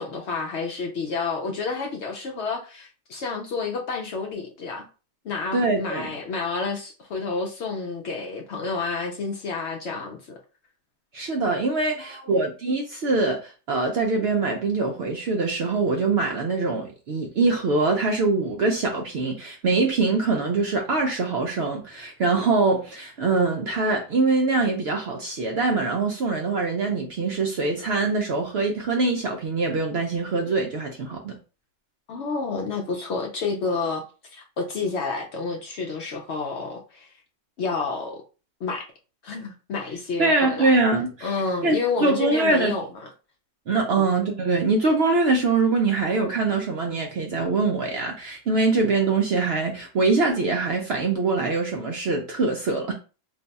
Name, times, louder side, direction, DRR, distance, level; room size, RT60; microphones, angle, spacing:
voice 1, 0.0-4.9 5.2-10.4 12.0-12.4 32.1-34.0 34.3-37.1 37.6-38.2 38.6-38.8 39.2-40.8 41.2-43.1 44.0-44.1, left 4 dB, 65° left, 0.7 m, -30 dB
voice 2, 5.5-6.1 11.1-31.4 40.2-42.8 43.7-52.9, right 3 dB, 65° right, 0.6 m, -23 dB
2.6 x 2.2 x 3.9 m
omnidirectional pair, 1.5 m